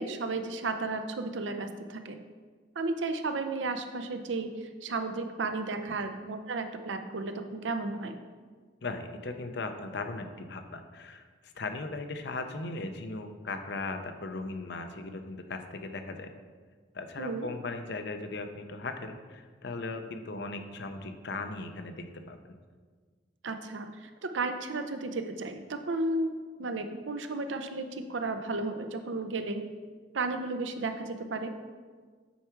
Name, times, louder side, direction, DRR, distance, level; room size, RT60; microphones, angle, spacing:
voice 1, 0.0-2.2 2.8-8.1 17.2-17.5 23.4-26.3 26.6-29.6 30.1-31.5, right 3 dB, 85° right, 7 dB, 0.6 m, -33 dB
voice 2, 8.8-16.3 16.9-22.4, left 3 dB, 65° left, 7 dB, 0.6 m, -38 dB
8.3 x 4.7 x 4.5 m, 1.5 s
head